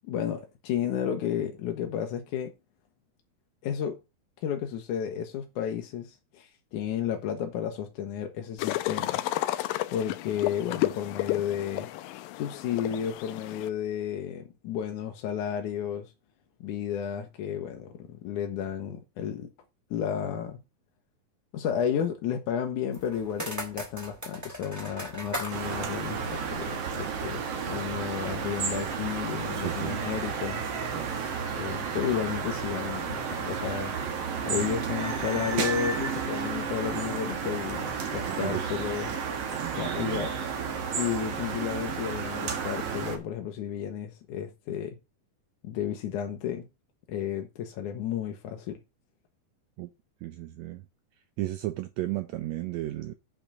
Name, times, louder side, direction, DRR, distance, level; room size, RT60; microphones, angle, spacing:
voice 1, 0.0-2.5 3.6-4.0 4.4-9.2 9.9-11.9 12.4-16.1 16.6-19.5 19.9-20.6 21.5-30.6 31.6-33.9 34.4-39.1 39.7-40.4 40.9-45.0 45.6-46.7 47.1-48.8, left 9 dB, 70° left, 2.3 m, -32 dB
sound 1, 8.6-13.7, left 16 dB, 85° left, 2.4 m, -32 dB
sound 2, 22.9-27.1, equal, 5° right, 2.4 m, -39 dB
sound 3, 25.5-43.2, right 6 dB, 50° right, 2.3 m, -32 dB
voice 2, 29.6-30.0 30.9-31.2 38.3-38.7 39.5-40.3 49.8-49.9 50.2-50.8 51.4-53.1, right 15 dB, 90° right, 1.5 m, -34 dB
8.7 x 5.6 x 6.1 m
omnidirectional pair, 4.0 m